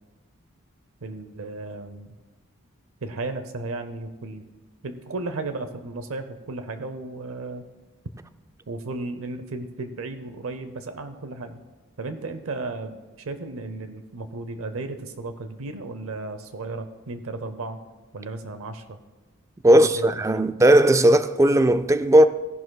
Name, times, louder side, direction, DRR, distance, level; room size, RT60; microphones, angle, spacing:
voice 1, 1.0-2.1 3.0-4.4 4.8-7.7 8.7-11.6 12.0-17.8 18.1-19.0 19.7-20.4, right 3 dB, 70° right, 0.7 m, -34 dB
voice 2, 19.6-22.3, right 1 dB, 15° right, 0.3 m, -16 dB
16.5 x 11.0 x 2.3 m
head